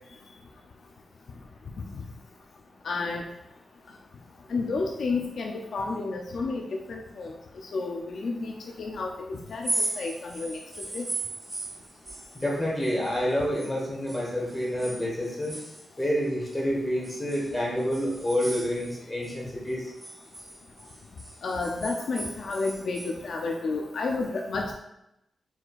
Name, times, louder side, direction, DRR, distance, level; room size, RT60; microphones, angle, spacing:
voice 1, 2.8-3.2 4.5-7.3 7.7-8.5 8.8-11.1 21.4-24.7, left 3 dB, 60° left, 1 dB, 0.4 m, -31 dB
sound 1, 9.5-13.8 14.1-16.6 17.0-19.4 19.7-23.2, right 2 dB, 15° right, 0.7 m, -37 dB
voice 2, 12.3-15.6 16.0-19.9, equal, 15° left, -3 dB, 1.2 m, -28 dB
4.6 x 4.2 x 2.4 m, 0.86 s
wide cardioid pair, 160°, 0 cm